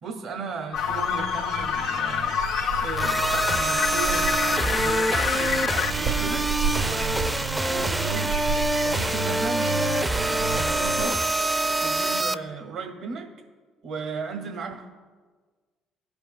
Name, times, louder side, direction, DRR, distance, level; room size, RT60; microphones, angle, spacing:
voice 1, 0.0-2.5 2.8-6.5 6.8-8.4 8.8-11.2 11.8-13.3 13.8-14.9, right 4 dB, 70° right, 2 dB, 1.6 m, -35 dB
sound 1, 0.7-5.9, left 9 dB, 65° left, 0.4 m, -27 dB
sound 2, 0.7-11.1, right 5 dB, 90° right, 1.4 m, -32 dB
sound 3, 3.0-12.3, right 1 dB, 15° right, 0.4 m, -25 dB
15.5 x 5.3 x 2.2 m, 1.4 s
hypercardioid pair, 60°, 0 cm